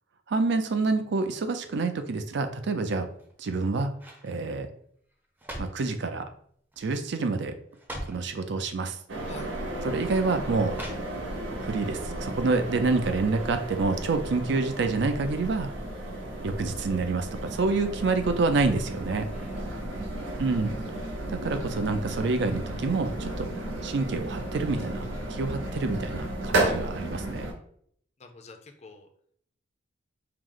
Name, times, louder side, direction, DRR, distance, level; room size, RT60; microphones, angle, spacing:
voice 1, 0.3-3.1 3.4-3.9 4.2-4.7 5.6-6.3 6.8-7.5 8.0-9.0 9.8-10.8 11.6-15.7 16.4-19.3 20.4-20.8 21.3-23.5 23.8-27.5, right 3 dB, 65° right, 8 dB, 0.4 m, -27 dB
sound 1, 3.1-3.5 4.0-4.3 5.1-5.9 6.7-7.0 7.3-7.4 7.7-8.3 9.2-9.4 10.7-11.5 11.9-12.0, equal, 10° right, 0.6 m, -41 dB
sound 2, 9.1-27.5, right 1 dB, 85° right, 0.8 m, -33 dB
voice 2, 19.3-19.6 28.2-29.1, left 3 dB, 35° left, 5 dB, 0.5 m, -47 dB
4.7 x 2.0 x 3.8 m, 0.64 s
head